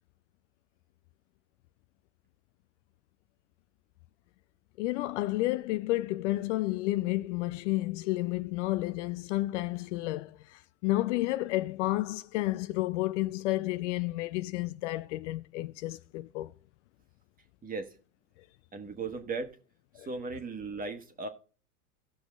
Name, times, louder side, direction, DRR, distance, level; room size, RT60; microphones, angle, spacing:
voice 1, 4.8-16.5 19.9-20.1, left 18 dB, 55° left, 0.5 m, -31 dB
voice 2, 17.6-17.9 18.7-19.5 20.0-21.3, right 4 dB, 20° right, 1.4 m, -37 dB
18.0 x 6.1 x 2.4 m
hypercardioid pair, 110°, 45 cm